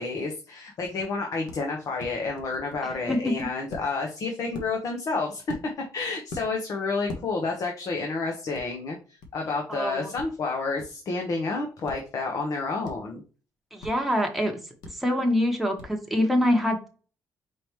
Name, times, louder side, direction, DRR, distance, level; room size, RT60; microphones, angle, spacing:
voice 1, 0.0-5.4 5.9-9.0 9.3-13.2, left 3 dB, 55° left, 2 dB, 1.0 m, -30 dB
sound 1, 0.8-1.0 1.5-1.6 2.0-3.9 4.5-4.7 5.5-5.9 6.3-6.5 7.1-7.2 8.5-8.6 9.2-9.3 10.2-10.3 10.8-10.9 11.8-12.0 12.8-13.0 13.8-13.9 14.8-14.9 15.8-15.9, left 2 dB, 85° left, 1.2 m, -39 dB
voice 2, 9.7-10.1 13.7-14.6 14.9-16.9, left 1 dB, ahead, 1 dB, 1.2 m, -25 dB
4.8 x 3.6 x 3.0 m, 0.36 s
cardioid pair, 135°, 7 cm